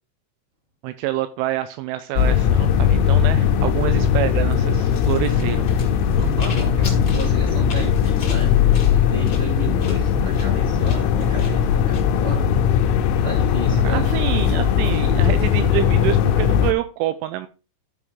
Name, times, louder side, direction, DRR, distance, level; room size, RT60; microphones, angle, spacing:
voice 1, 0.8-5.7 13.8-17.5, right 14 dB, 85° right, 10 dB, 2.9 m, -26 dB
sound 1, 2.2-16.7, left 8 dB, 80° left, 3.3 m, -19 dB
sound 2, 4.9-12.0, left 3 dB, 45° left, 1.5 m, -37 dB
voice 2, 6.2-8.6 9.0-12.4 13.2-14.1, right 1 dB, 10° right, -2 dB, 3.2 m, -33 dB
13.5 x 5.0 x 3.6 m, 0.33 s
omnidirectional pair, 5.7 m